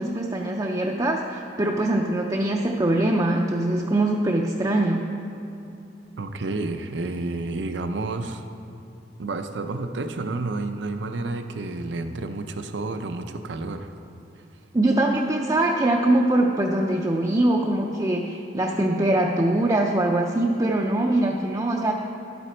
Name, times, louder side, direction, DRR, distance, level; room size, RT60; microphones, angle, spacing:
voice 1, 0.0-5.1 14.7-21.9, right 1 dB, 20° right, 0 dB, 0.5 m, -22 dB
voice 2, 6.2-8.4 9.2-13.9, right 2 dB, 75° right, 8 dB, 0.6 m, -30 dB
11.0 x 8.0 x 4.4 m, 2.9 s
head